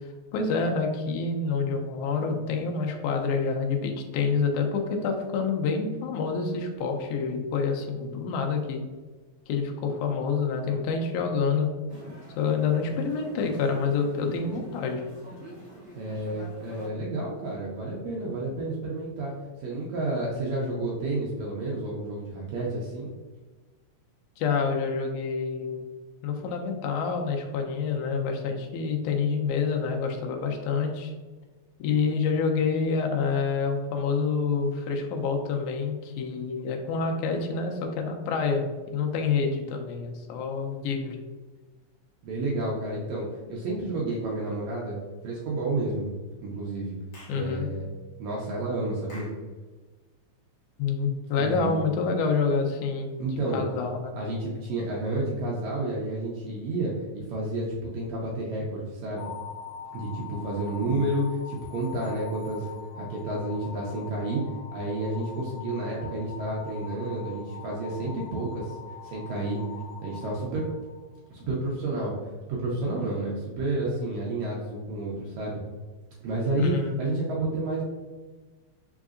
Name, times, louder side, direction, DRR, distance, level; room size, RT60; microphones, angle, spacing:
voice 1, 0.3-8.8 9.5-11.7 12.4-15.0 24.4-25.9 26.2-31.1 31.8-38.6 38.9-41.2 47.3-47.7 50.8-53.3 53.5-54.2 76.6-77.0, left 5 dB, 85° left, 3 dB, 2.1 m, -27 dB
sound 1, 11.9-16.9, right 2 dB, 50° right, 1.0 m, -45 dB
voice 2, 15.9-19.3 19.6-23.1 42.2-45.0 45.2-46.1 46.4-47.0 47.3-47.9 48.2-49.3 51.4-51.8 53.2-53.6 54.2-59.3 59.9-64.4 64.7-68.8 69.0-69.6 70.0-70.7 71.3-75.6 76.2-76.7 77.0-77.8, right 2 dB, 75° right, -4 dB, 1.9 m, -30 dB
Clapping / Chirp tweet, 47.1-47.4 49.1-49.4, left 1 dB, 55° left, 1.4 m, -47 dB
sound 2, 59.2-71.3, left 7 dB, 70° left, 2.1 m, -43 dB
5.0 x 3.6 x 2.4 m, 1.3 s
omnidirectional pair, 3.4 m